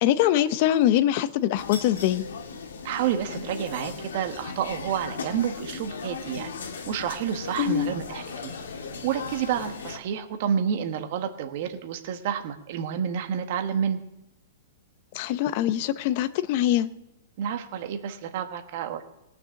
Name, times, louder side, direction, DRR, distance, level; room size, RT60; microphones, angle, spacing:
voice 1, 0.0-2.2 7.6-7.9 15.1-16.9, left 12 dB, 45° left, 13 dB, 0.8 m, -23 dB
sound 1, 1.6-10.0, left 5 dB, 90° left, 2.1 m, -37 dB
voice 2, 2.8-6.5 6.9-8.5 9.0-14.0 17.4-19.0, right 8 dB, 55° right, 6 dB, 1.4 m, -29 dB
18.5 x 6.8 x 7.2 m, 0.86 s
hypercardioid pair, 140°, 0 cm